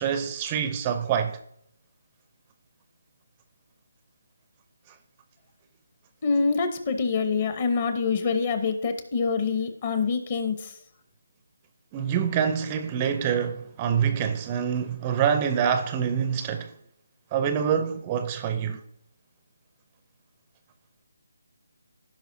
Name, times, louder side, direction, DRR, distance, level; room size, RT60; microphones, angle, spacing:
voice 1, 0.0-1.4 11.9-16.7 17.3-18.8, right 8 dB, 20° right, 0.5 m, -26 dB
voice 2, 6.2-10.7, left 5 dB, 35° left, 1.0 m, -25 dB
15.5 x 5.3 x 2.7 m
figure-of-eight pair, 160°, 0 cm